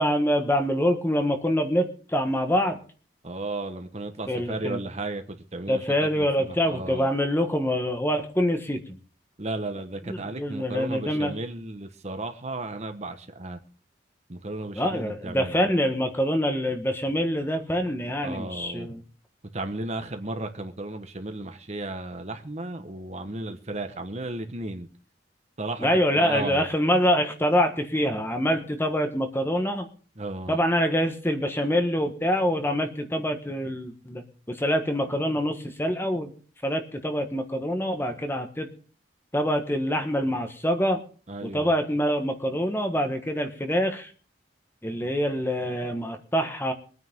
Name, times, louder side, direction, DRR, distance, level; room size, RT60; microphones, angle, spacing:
voice 1, 0.0-2.8 4.3-4.8 5.7-9.0 10.1-11.4 14.7-19.0 25.8-29.9 30.5-36.3 36.6-38.7 39.3-41.0 41.4-44.1 44.8-46.7, equal, 15° left, 6 dB, 1.5 m, -25 dB
voice 2, 3.2-7.1 9.4-13.6 14.3-15.7 18.2-18.9 19.5-24.9 25.6-25.9 26.1-26.6 30.2-30.6 41.3-41.7, right 2 dB, 40° right, 7 dB, 1.2 m, -34 dB
23.0 x 9.5 x 3.7 m, 0.41 s
head